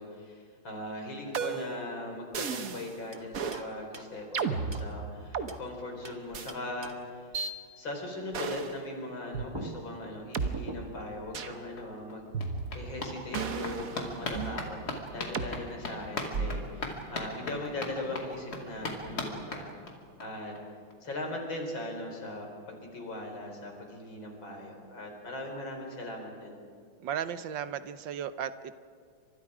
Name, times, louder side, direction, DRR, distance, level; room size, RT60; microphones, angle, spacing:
voice 1, 0.0-12.3 12.7-14.8 15.1-19.7 20.2-20.5 21.0-26.6, left 1 dB, 85° left, 2 dB, 5.1 m, -39 dB
sound 1, 1.3-1.8 2.3-2.9 3.3-3.6 4.3-5.5 6.3-6.5 7.3-7.5 8.3-8.8 9.3-9.5 10.3-10.5 11.3-11.6 12.3-12.9 13.3-14.6 15.3-15.5 16.3-16.7, right 5 dB, 50° right, 1.4 m, -34 dB
sound 2, 3.1-5.7 6.0-7.2 9.1-9.2 9.5-11.2, right 2 dB, 15° right, 1.0 m, -45 dB
sound 3, 11.4-11.5 11.8-20.2 20.6-20.7 20.9-21.0 21.3-21.4, left 2 dB, 55° left, 3.1 m, -39 dB
voice 2, 27.0-28.8, right 8 dB, 75° right, 12 dB, 1.6 m, -35 dB
30.0 x 26.0 x 5.0 m, 2.1 s
omnidirectional pair, 2.1 m